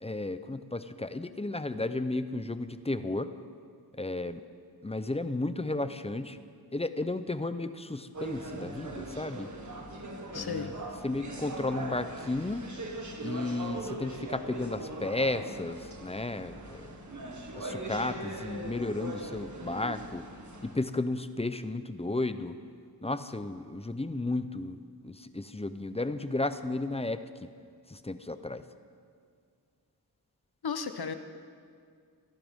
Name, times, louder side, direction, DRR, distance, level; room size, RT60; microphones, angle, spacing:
voice 1, 0.0-3.3 4.0-4.4 4.8-6.4 6.7-9.5 10.4-10.8 11.0-12.7 13.2-17.0 17.5-20.2 20.6-22.6 23.0-27.2 27.9-28.6, left 2 dB, 15° left, 11 dB, 0.6 m, -33 dB
sound 1, 8.1-20.8, right 1 dB, 45° right, 1.8 m, -40 dB
voice 2, 10.3-10.7 30.6-31.1, left 6 dB, 65° left, 9 dB, 0.9 m, -34 dB
26.5 x 11.5 x 3.7 m, 2.2 s
wide cardioid pair, 65°, 40 cm